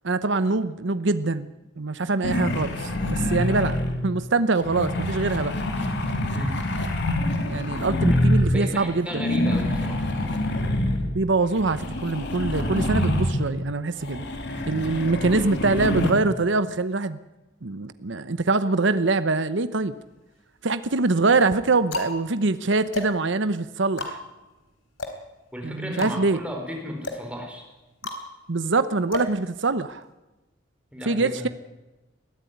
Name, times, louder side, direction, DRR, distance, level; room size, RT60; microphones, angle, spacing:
voice 1, 0.0-1.5 1.8-5.5 7.4-9.2 11.1-14.2 14.7-17.2 17.6-19.9 20.6-24.2 25.6-26.4 28.5-30.0 31.1-31.5, right 3 dB, 65° right, 12 dB, 0.9 m, -24 dB
sound 1, 2.2-4.1 4.6-8.6 9.1-13.6 14.0-16.1, left 1 dB, 60° left, 3.0 m, -26 dB
voice 2, 8.1-10.1 25.5-27.6 30.9-31.5, equal, 5° right, 2 dB, 4.4 m, -34 dB
sound 2, 20.0-20.7 21.4-30.1, left 2 dB, 80° left, 3.7 m, -36 dB
22.0 x 14.5 x 9.4 m, 1.1 s
head